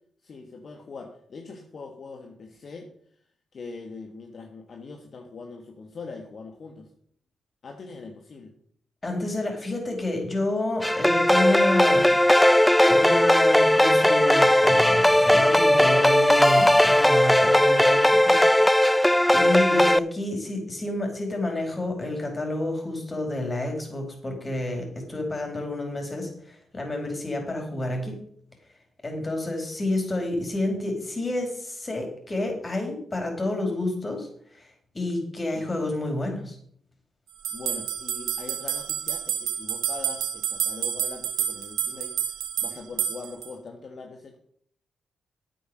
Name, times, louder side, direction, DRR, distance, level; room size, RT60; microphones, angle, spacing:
voice 1, 0.2-2.9 3.1-3.2 3.5-6.9 7.6-8.5 35.5-35.8 37.5-44.4, left 4 dB, 60° left, 3 dB, 1.6 m, -42 dB
voice 2, 9.0-12.5 12.9-18.4 18.7-28.2 29.0-36.6, left 2 dB, 30° left, 2 dB, 4.8 m, -29 dB
keys a minor, 10.8-20.0, left 1 dB, 5° left, 0.4 m, -18 dB
sound 1, 37.4-43.5, right 10 dB, 90° right, 1.0 m, -29 dB
9.7 x 8.6 x 6.4 m, 0.62 s
cardioid pair, 65°, 0 cm